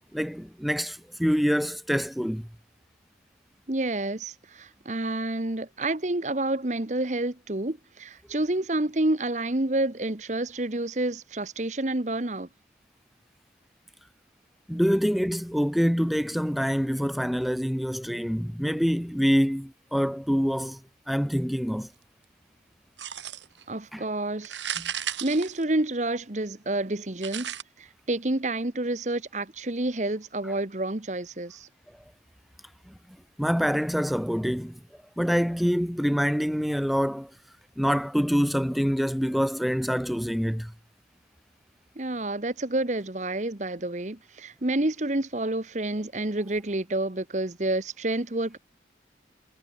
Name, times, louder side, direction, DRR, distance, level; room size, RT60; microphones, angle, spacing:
voice 1, 0.1-2.5 14.7-20.8 21.1-21.9 23.9-24.0 24.8-24.9 32.9-33.0 33.4-34.8 35.2-37.3 37.8-40.7, equal, ahead, 0.9 m, -26 dB
voice 2, 3.7-12.5 23.7-24.6 25.2-31.7 42.0-48.6, right 2 dB, 40° right, 1.2 m, -29 dB
sound 1, 23.0-23.6 24.4-26.2 27.2-27.6, right 9 dB, 90° right, 7.6 m, -34 dB
head